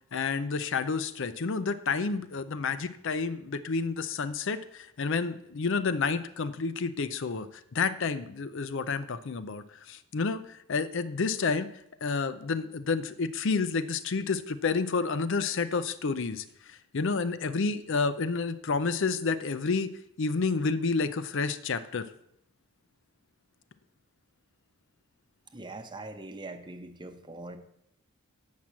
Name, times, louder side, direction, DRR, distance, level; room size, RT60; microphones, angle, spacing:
voice 1, 0.1-11.7 12.0-19.9 20.2-22.1, left 4 dB, 60° left, 13 dB, 0.5 m, -30 dB
voice 2, 25.5-27.6, right 2 dB, 20° right, 7 dB, 0.9 m, -42 dB
8.4 x 6.0 x 7.5 m, 0.77 s
head